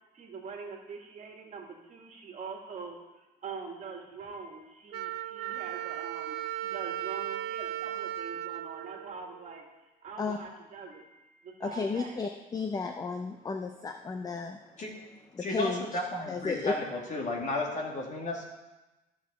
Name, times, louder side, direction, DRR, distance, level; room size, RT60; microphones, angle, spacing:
voice 1, 0.1-3.0 3.4-9.7 10.0-12.2, right 5 dB, 45° right, 2 dB, 1.9 m, -43 dB
Wind instrument woodwind instrument, 4.9-9.7, right 13 dB, 90° right, 0.5 m, -37 dB
voice 2, 11.6-14.6 15.3-15.9 16.3-16.7, left 4 dB, 20° left, 6 dB, 0.6 m, -33 dB
voice 3, 15.4-18.4, left 2 dB, 45° left, 0 dB, 2.2 m, -33 dB
14.0 x 6.3 x 4.2 m, 1.1 s
cardioid pair, 110°, 17 cm